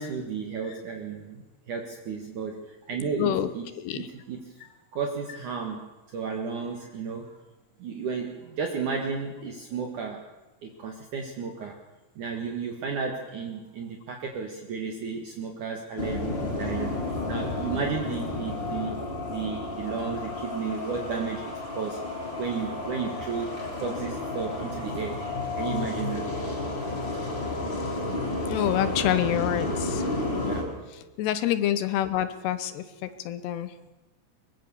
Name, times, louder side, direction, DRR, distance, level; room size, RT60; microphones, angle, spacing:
voice 1, 0.0-3.7 3.9-4.5 4.9-7.4 7.8-10.2 10.6-11.8 12.2-19.0 19.3-22.0 22.4-26.3 30.5-30.6, right 5 dB, 55° right, 3 dB, 2.8 m, -33 dB
voice 2, 3.8-4.1 28.5-30.0 31.2-33.7, left 11 dB, 80° left, 12 dB, 3.0 m, -27 dB
sound 1, 16.0-30.6, left 2 dB, 25° left, 5.0 m, -31 dB
22.5 x 21.5 x 7.1 m, 1.1 s
omnidirectional pair, 4.9 m